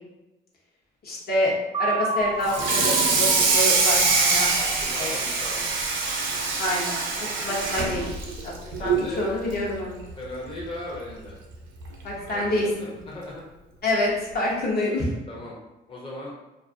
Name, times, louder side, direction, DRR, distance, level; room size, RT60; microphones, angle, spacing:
voice 1, 1.0-1.5 1.8-4.5 5.0-5.1 6.6-8.1 8.4-8.5 8.8-10.0 12.0-12.9 13.8-15.1, left 1 dB, 50° left, -4 dB, 0.8 m, -27 dB
sound 1, 1.7-5.6, right 3 dB, 25° right, 0.4 m, -32 dB
Water tap faucet / Sink (filling or washing), 2.4-9.1 9.5-9.7 10.1-10.2 10.6-10.7 11.8-11.9 12.4-12.6, right 4 dB, 75° right, 0.6 m, -24 dB
voice 2, 4.6-5.7 8.8-9.3 10.2-11.3 12.3-13.4 15.3-15.5 15.9-16.3, left 1 dB, 25° left, -4 dB, 0.7 m, -37 dB
2.4 x 2.4 x 2.5 m, 1.0 s
cardioid pair, 90°, 20 cm